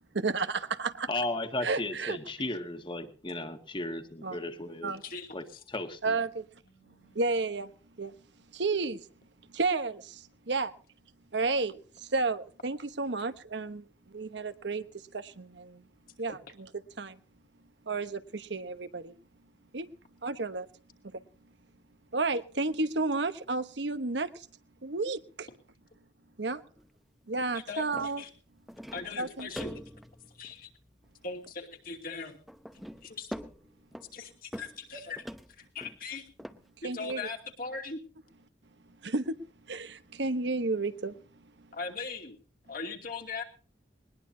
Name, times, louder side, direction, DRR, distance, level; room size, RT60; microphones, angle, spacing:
voice 1, 0.1-1.1 1.6-2.2 4.2-4.4 4.8-5.0 6.0-6.5 7.1-7.7 8.0-8.1 8.5-9.1 9.5-10.7 11.3-14.9 15.1-15.8 16.2-17.2 17.9-19.1 19.7-19.9 20.2-20.7 21.1-21.2 22.1-24.5 24.8-25.5 26.4-26.6 27.3-28.2 29.2-29.5 36.8-37.3 39.0-39.4 39.7-41.1 41.6-41.7, right 3 dB, 70° right, 1.1 m, -32 dB
voice 2, 1.1-5.0 5.3-6.2, left 2 dB, 25° left, 1.8 m, -35 dB
sound 1, 4.0-5.0 6.6-7.6, right 3 dB, 85° left, 5.8 m, -66 dB
voice 3, 5.0-5.6 27.7-28.3 28.9-29.8 30.3-30.7 31.2-32.4 33.0-33.3 34.1-35.2 35.6-36.2 36.8-38.0 41.7-42.4 42.7-43.4, left 4 dB, 50° left, 2.6 m, -39 dB
sound 2, 26.8-26.9 27.3-27.6 27.9-28.2 28.7-31.1 31.5-31.6 32.5-34.3 34.5-34.9 35.2-36.0 36.4-36.6 37.1-37.2, equal, ahead, 0.8 m, -44 dB
20.5 x 20.0 x 2.8 m
head